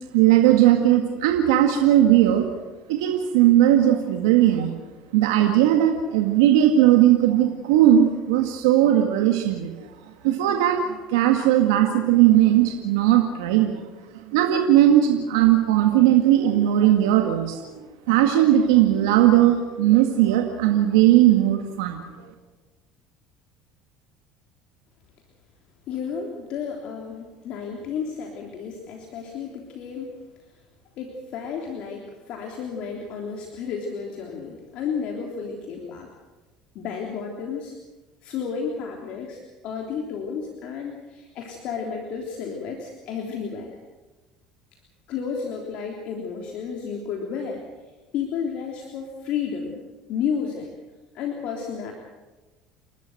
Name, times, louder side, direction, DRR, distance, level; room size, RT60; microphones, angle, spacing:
voice 1, 0.1-2.4 2.9-4.7 5.1-9.7 10.2-13.7 14.1-17.6 18.1-22.0, right 12 dB, 90° right, 3 dB, 2.0 m, -18 dB
voice 2, 25.9-30.1 31.0-36.1 36.7-37.7 38.2-43.7 45.1-47.6 48.1-49.8 50.1-50.7 51.1-51.9, left 6 dB, 60° left, 1 dB, 3.3 m, -32 dB
30.0 x 12.5 x 7.9 m, 1.2 s
supercardioid pair, 95°, 2 cm